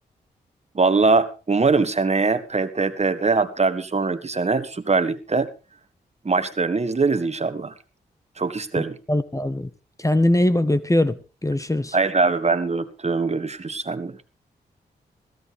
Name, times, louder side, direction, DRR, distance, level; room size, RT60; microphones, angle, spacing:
voice 1, 0.7-5.5 6.2-7.7 8.4-9.0 11.9-14.2, right 4 dB, 35° right, 1.7 m, -22 dB
voice 2, 8.7-9.7 10.0-12.0, left 1 dB, 20° left, 1.4 m, -22 dB
16.5 x 15.0 x 3.5 m
cardioid pair, 50°, 18 cm